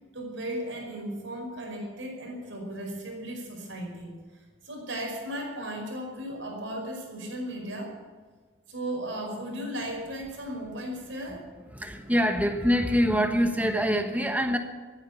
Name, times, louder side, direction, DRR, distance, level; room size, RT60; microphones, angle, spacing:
voice 1, 0.1-7.9 8.7-11.4, right 1 dB, 75° right, 0 dB, 5.1 m, -36 dB
voice 2, 11.7-14.6, equal, 10° right, 5 dB, 1.2 m, -25 dB
15.0 x 9.7 x 8.4 m, 1.4 s
head